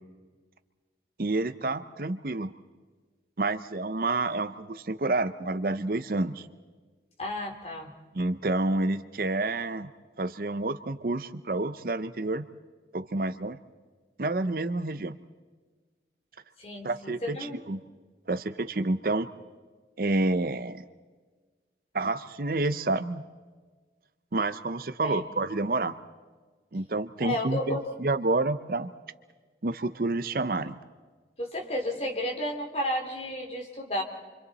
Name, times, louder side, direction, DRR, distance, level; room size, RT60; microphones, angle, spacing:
voice 1, 1.2-2.5 3.4-6.5 8.1-9.9 10.2-12.5 12.9-13.6 14.2-15.1 16.8-17.8 18.3-19.3 20.0-20.8 21.9-23.2 24.3-26.0 26.7-28.9 29.6-30.8, right 2 dB, 55° right, 12 dB, 0.7 m, -29 dB
voice 2, 7.2-7.9 16.6-17.6 25.0-25.2 27.2-27.8 31.4-34.0, left 1 dB, 35° left, 2 dB, 2.9 m, -32 dB
28.5 x 25.5 x 4.1 m, 1.4 s
head